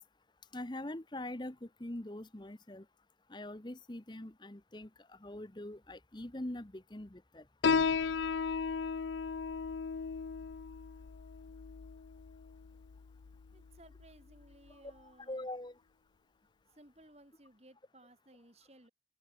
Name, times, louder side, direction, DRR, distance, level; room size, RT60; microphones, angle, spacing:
voice 1, 0.5-2.8 3.3-7.4 14.7-15.8, left 1 dB, 25° left, 1.0 m, -43 dB
Piano, 7.6-14.7, left 5 dB, 85° left, 0.5 m, -35 dB
voice 2, 13.5-15.5 16.7-18.9, right 1 dB, 35° right, 4.3 m, -60 dB
open air
head